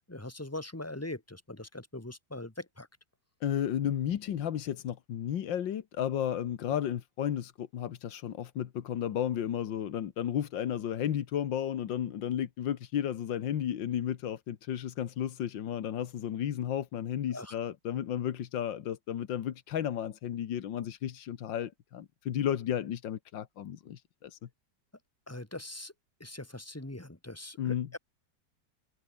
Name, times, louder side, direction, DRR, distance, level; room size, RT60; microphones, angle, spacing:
voice 1, 0.0-2.9 17.3-17.6 25.3-25.9 26.2-28.0, left 2 dB, 10° left, 2.2 m, -41 dB
voice 2, 3.4-24.5 27.6-27.9, left 10 dB, 85° left, 1.9 m, -33 dB
omnidirectional pair, 2.0 m